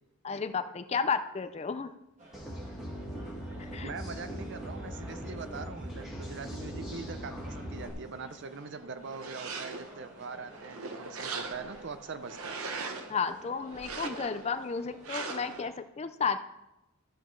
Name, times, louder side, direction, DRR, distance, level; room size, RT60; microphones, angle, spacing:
voice 1, 0.2-1.9 3.7-3.9 13.1-16.4, left 5 dB, 30° left, 11 dB, 0.4 m, -32 dB
sound 1, 2.2-15.7, right 1 dB, 30° right, 2.1 m, -53 dB
sound 2, 2.3-7.9, equal, ahead, 1.9 m, -40 dB
voice 2, 3.8-12.6, right 4 dB, 50° right, 10 dB, 0.6 m, -42 dB
sound 3, 9.1-10.0 10.5-11.8 12.2-13.1 13.7-14.5 15.0-15.6, right 4 dB, 75° right, 0.9 m, -39 dB
12.5 x 6.3 x 4.6 m, 0.95 s
head